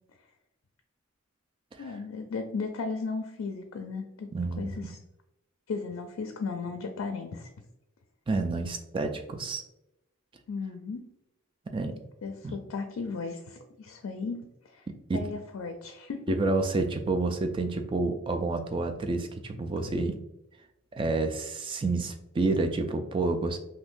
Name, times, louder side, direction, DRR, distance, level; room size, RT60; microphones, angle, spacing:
voice 1, 1.8-4.3 4.6-5.0 5.7-7.5 10.5-11.0 12.2-14.9 15.1-16.4, left 4 dB, 85° left, 5 dB, 0.4 m, -35 dB
voice 2, 4.3-4.9 8.3-9.6 11.7-12.0 12.4-12.5 15.1-15.3 16.3-20.2 20.9-23.6, right 3 dB, 25° right, 5 dB, 0.3 m, -29 dB
3.5 x 2.7 x 2.5 m, 0.88 s
head